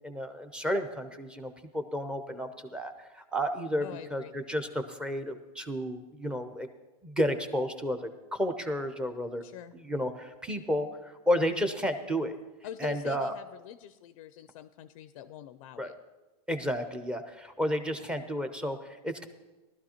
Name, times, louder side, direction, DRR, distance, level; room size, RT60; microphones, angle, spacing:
voice 1, 0.0-6.7 7.0-9.4 9.7-12.4 12.8-13.3 15.8-15.9 16.5-19.3, equal, 5° right, 7 dB, 0.6 m, -32 dB
voice 2, 3.8-4.3 9.4-9.7 12.6-16.0, left 11 dB, 55° left, 12 dB, 0.4 m, -44 dB
18.0 x 12.5 x 2.9 m, 1.1 s
supercardioid pair, 150°, 21 cm